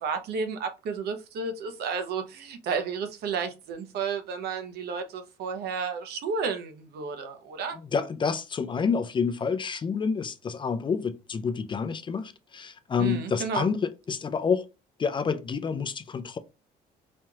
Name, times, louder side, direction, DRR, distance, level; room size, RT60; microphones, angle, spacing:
voice 1, 0.0-7.8 13.0-13.7, right 5 dB, 70° right, 0.9 m, -32 dB
voice 2, 7.7-14.7 15.0-16.4, left 5 dB, 30° left, 0.4 m, -28 dB
4.3 x 3.0 x 2.4 m
cardioid pair, 110°, 17 cm